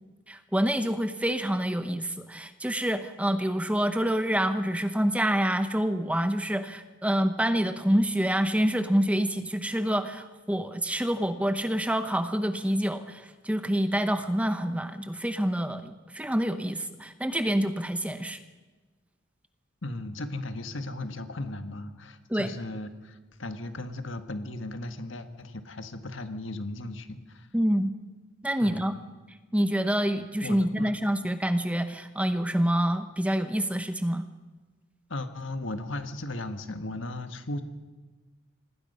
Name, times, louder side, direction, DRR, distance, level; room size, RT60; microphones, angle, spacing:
voice 1, 0.3-18.4 22.3-22.5 27.5-27.9 28.4-28.9 29.5-34.2, equal, 5° right, 9 dB, 0.8 m, -27 dB
voice 2, 19.8-27.5 28.6-28.8 30.4-31.0 35.1-37.6, left 2 dB, 65° left, 8 dB, 1.6 m, -36 dB
25.5 x 19.5 x 5.6 m, 1.2 s
head